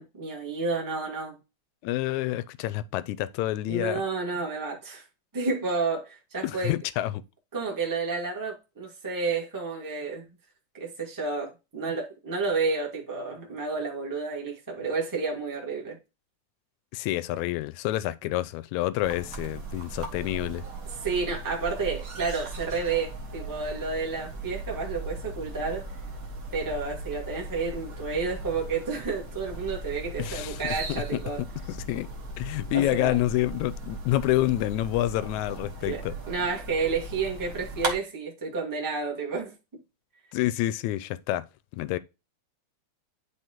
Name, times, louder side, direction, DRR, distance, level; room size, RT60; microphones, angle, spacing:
voice 1, 0.0-1.4 3.7-5.0 5.3-6.7 7.5-10.2 10.7-16.0 21.0-25.8 26.5-31.4 32.7-33.1 35.8-39.5, right 4 dB, 10° right, 1.1 m, -30 dB
voice 2, 1.8-4.0 6.4-7.2 16.9-20.6 30.2-30.6 30.9-31.2 31.7-32.1 32.4-36.1 40.3-41.4 41.7-42.0, left 15 dB, 80° left, 1.8 m, -28 dB
sound 1, 19.0-37.9, right 2 dB, 50° right, 1.1 m, -38 dB
10.0 x 4.5 x 3.0 m
omnidirectional pair, 3.6 m